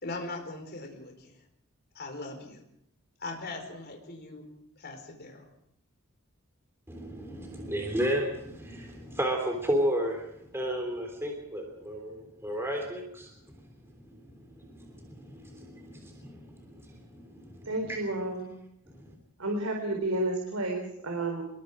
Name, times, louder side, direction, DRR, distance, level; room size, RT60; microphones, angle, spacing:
voice 1, 0.0-1.4 1.9-2.6 3.2-4.4 4.8-5.5, left 2 dB, 45° left, 3 dB, 4.7 m, -40 dB
voice 2, 6.9-10.2 10.5-13.3 14.1-18.0 18.9-19.1, equal, 10° right, 2 dB, 3.3 m, -33 dB
voice 3, 17.7-18.5 19.4-21.4, right 2 dB, 75° right, 2 dB, 4.1 m, -31 dB
26.5 x 21.5 x 5.1 m, 0.76 s
head